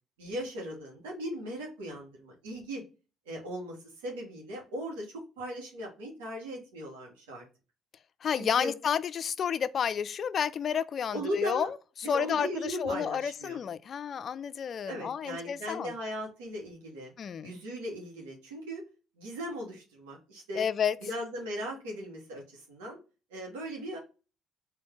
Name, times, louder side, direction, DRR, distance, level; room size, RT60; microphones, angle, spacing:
voice 1, 0.2-2.8 3.2-3.8 4.0-7.4 8.3-8.7 11.1-11.7 12.0-13.6 14.8-17.1 17.4-18.8 19.2-20.7 21.0-23.0 23.3-24.0, equal, 90° right, 1.3 m, -38 dB
voice 2, 8.2-15.9 17.2-17.5 20.5-21.0, left 7 dB, 55° left, 0.3 m, -31 dB
3.7 x 2.7 x 3.5 m
hypercardioid pair, 55°, 0 cm